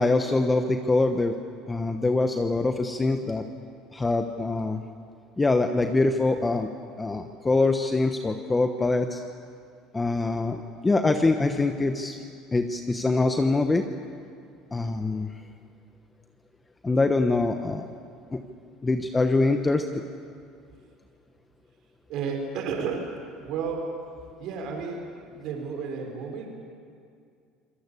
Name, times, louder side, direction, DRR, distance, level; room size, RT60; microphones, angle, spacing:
voice 1, 0.0-1.3 1.7-3.4 3.9-4.8 5.4-6.7 7.0-9.2 9.9-12.2 12.5-13.8 14.7-15.3 16.8-17.9 18.3-18.4 18.8-20.0, left 3 dB, 15° left, 6 dB, 1.1 m, -24 dB
voice 2, 22.1-23.0 23.4-23.9 24.4-26.5, right 5 dB, 60° right, 2 dB, 4.7 m, -32 dB
26.0 x 19.0 x 8.5 m, 2.3 s
supercardioid pair, 115°, 0 cm